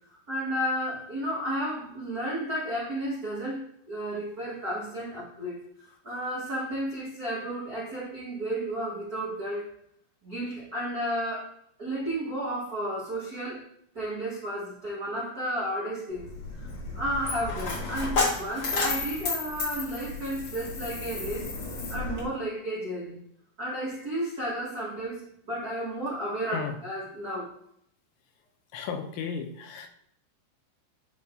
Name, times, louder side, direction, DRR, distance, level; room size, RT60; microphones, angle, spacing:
voice 1, 0.3-3.6 3.9-5.6 6.0-9.7 10.2-11.5 11.8-13.6 13.9-16.7 16.9-21.5 21.9-23.2 23.6-27.5, right 1 dB, 90° right, -8 dB, 0.8 m, -32 dB
Coin (dropping), 16.1-22.2, left 3 dB, 45° left, 2.0 m, -32 dB
voice 2, 28.7-29.9, left 6 dB, 85° left, 6 dB, 3.1 m, -34 dB
10.5 x 3.7 x 3.8 m, 0.70 s
omnidirectional pair, 5.2 m